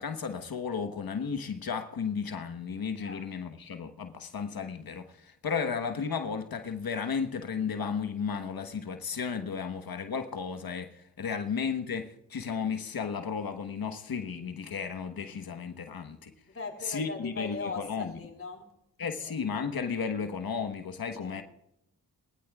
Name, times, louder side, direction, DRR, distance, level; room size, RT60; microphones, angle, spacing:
voice 1, 0.0-16.3 16.8-18.1 19.0-21.4, left 6 dB, 65° left, 1.3 m, -34 dB
voice 2, 16.5-18.7 19.2-19.3 21.2-21.4, left 4 dB, 35° left, 4.3 m, -40 dB
22.0 x 15.0 x 2.4 m
cardioid pair, 45°, 38 cm